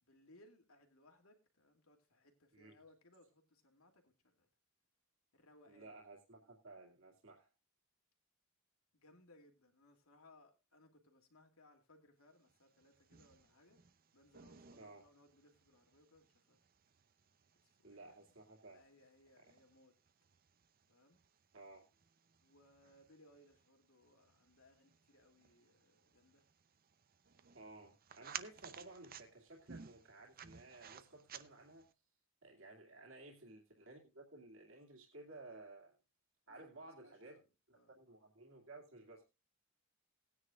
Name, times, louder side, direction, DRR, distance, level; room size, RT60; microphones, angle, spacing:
voice 1, 0.0-4.5 5.3-5.9 8.9-13.8 14.1-16.7 17.8-18.2 18.7-19.9 20.9-21.2 22.4-26.4 36.5-36.7 37.0-38.0, left 1 dB, 90° left, 2.7 m, -67 dB
voice 2, 5.7-7.5 14.7-15.0 17.8-18.8 21.5-21.8 27.5-31.9 32.4-36.0 36.5-37.4 37.7-39.2, right 2 dB, 65° right, 2.4 m, -56 dB
sound 1, 12.5-31.9, right 8 dB, 45° right, 0.7 m, -57 dB
19.0 x 9.8 x 2.4 m
head